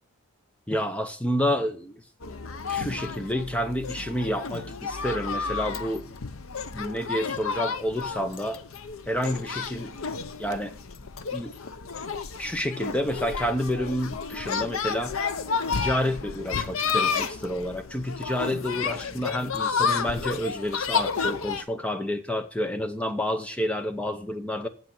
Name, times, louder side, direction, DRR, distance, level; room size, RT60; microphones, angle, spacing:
voice 1, 0.7-2.0 2.7-6.0 6.7-8.6 9.1-10.0 10.4-10.7 11.3-11.5 12.4-15.3 15.7-24.7, equal, 5° left, 8 dB, 0.7 m, -29 dB
sound 1, 2.2-21.6, left 5 dB, 70° left, 0.7 m, -31 dB
7.9 x 7.5 x 5.9 m, 0.42 s
head